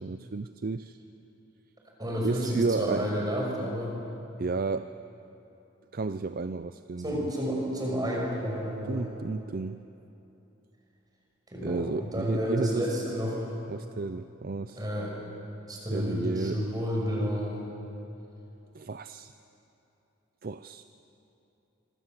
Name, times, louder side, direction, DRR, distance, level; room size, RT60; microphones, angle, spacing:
voice 1, 0.0-1.0 2.2-3.1 4.4-4.9 5.9-7.3 8.9-9.9 11.6-12.9 13.7-14.8 15.9-16.6 18.7-19.3 20.4-20.8, right 3 dB, 45° right, 11 dB, 0.5 m, -32 dB
voice 2, 2.0-4.0 7.0-9.1 11.5-13.5 14.8-15.1 15.7-17.6, equal, 20° right, -1 dB, 6.0 m, -30 dB
25.5 x 24.5 x 7.6 m, 2.9 s
head